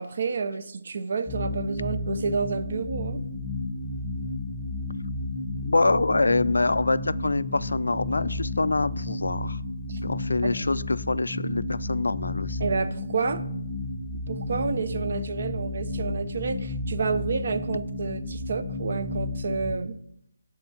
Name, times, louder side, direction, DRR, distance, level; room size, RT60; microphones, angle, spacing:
voice 1, 0.0-3.2 9.9-10.0 12.6-13.4 14.3-20.0, right 5 dB, 50° right, 12 dB, 0.6 m, -29 dB
sound 1, 1.3-19.7, left 2 dB, 15° left, 0.8 m, -32 dB
voice 2, 5.6-9.6 10.0-12.7, left 3 dB, 80° left, 16 dB, 0.3 m, -25 dB
8.0 x 3.5 x 5.9 m, 0.74 s
figure-of-eight pair, 155°, 0 cm